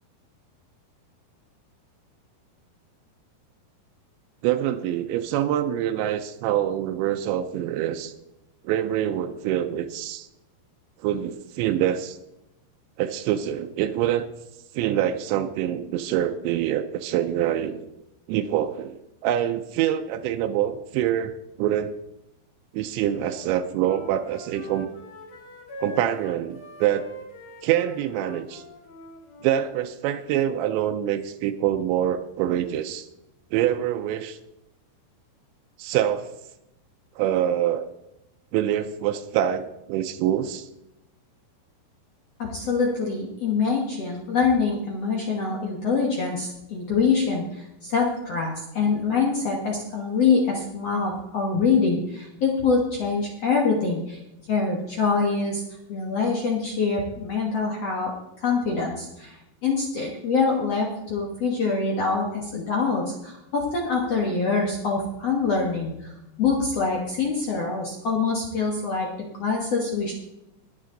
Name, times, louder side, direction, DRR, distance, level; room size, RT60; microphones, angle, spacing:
voice 1, 4.4-8.1 8.6-10.3 11.0-12.2 13.0-14.3 14.7-17.9 18.3-21.9 22.7-24.9 25.8-27.1 27.6-28.6 29.4-33.1 33.5-34.4 35.8-36.3 37.2-37.9 38.5-40.7, right 11 dB, 85° right, 8 dB, 2.9 m, -25 dB
Wind instrument woodwind instrument, 23.3-29.7, left 3 dB, 45° left, 2.5 m, -43 dB
voice 2, 42.4-54.2 54.5-55.6 55.9-58.1 58.4-66.1 66.4-69.1 69.4-70.1, left 4 dB, 65° left, -1 dB, 1.6 m, -25 dB
21.0 x 7.5 x 3.8 m, 0.89 s
omnidirectional pair, 5.1 m